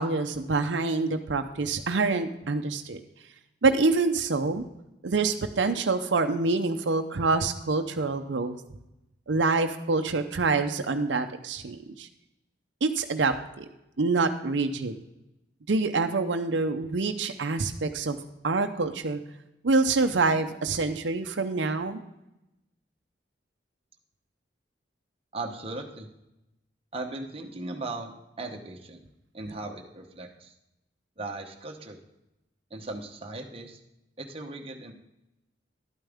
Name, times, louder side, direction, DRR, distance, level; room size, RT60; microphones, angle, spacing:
voice 1, 0.0-3.0 3.6-4.6 5.0-8.6 9.3-12.1 12.8-13.7 14.0-14.9 15.7-18.2 18.4-19.2 19.6-22.0, right 3 dB, 75° right, 6 dB, 0.7 m, -26 dB
voice 2, 25.3-26.1 26.9-28.1 28.4-29.0 29.3-30.5 31.2-32.0 32.7-33.8 34.2-34.9, right 2 dB, 35° right, 2 dB, 1.0 m, -37 dB
11.5 x 9.0 x 3.6 m, 0.89 s
head